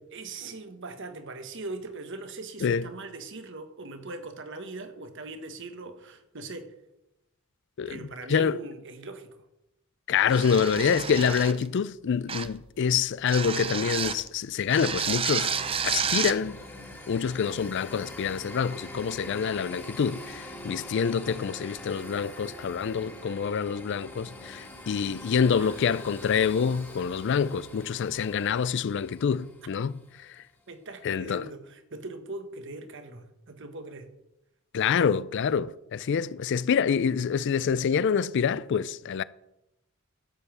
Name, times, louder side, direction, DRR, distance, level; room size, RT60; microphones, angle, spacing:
voice 1, 0.1-6.7 7.9-9.4 25.6-25.8 30.7-34.1, right 3 dB, 60° right, 1.2 m, -40 dB
voice 2, 10.1-15.5 15.8-16.6 17.1-30.4 31.0-31.5 34.7-39.2, left 6 dB, 60° left, 0.4 m, -26 dB
sound 1, 10.3-11.7 12.3-12.6 13.3-14.3 14.7-16.4, right 7 dB, 25° right, 0.6 m, -30 dB
sound 2, 15.4-30.2, left 1 dB, 10° left, 1.8 m, -44 dB
12.5 x 5.5 x 7.3 m
head